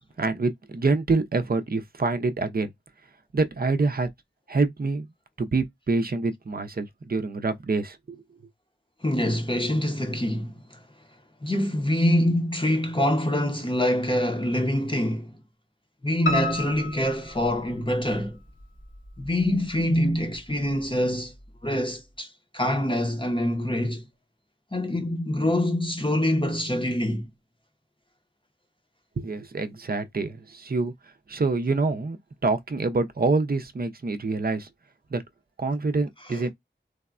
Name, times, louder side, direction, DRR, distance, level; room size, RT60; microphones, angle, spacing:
voice 1, 0.2-2.7 3.3-4.1 4.5-5.1 5.4-8.2 29.2-30.9 31.3-32.2 32.4-34.7 35.1-35.2 35.6-36.5, right 3 dB, 50° right, 0.5 m, -26 dB
voice 2, 9.0-10.8 11.4-15.3 16.0-18.4 19.2-21.3 21.6-24.1 24.7-27.3 36.3-36.4, left 1 dB, 25° left, 0.7 m, -25 dB
Piano, 16.3-18.2 18.6-19.5 19.8-19.9 20.3-20.4 20.7-20.8, left 2 dB, 80° left, 1.2 m, -32 dB
3.4 x 2.1 x 2.3 m
wide cardioid pair, 45°, 20 cm